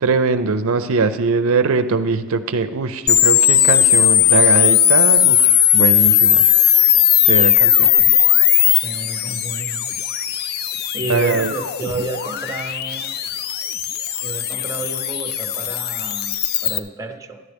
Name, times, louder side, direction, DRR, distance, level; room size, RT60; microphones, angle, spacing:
voice 1, 0.0-6.5 7.3-7.9 11.1-11.5, right 4 dB, 65° right, 10 dB, 0.5 m, -21 dB
sound 1, 3.1-16.8, left 10 dB, 45° left, 0.4 m, -17 dB
voice 2, 8.8-9.9 10.9-13.2 14.2-17.4, right 3 dB, 15° right, 6 dB, 0.7 m, -30 dB
13.0 x 11.0 x 3.5 m, 1.2 s
head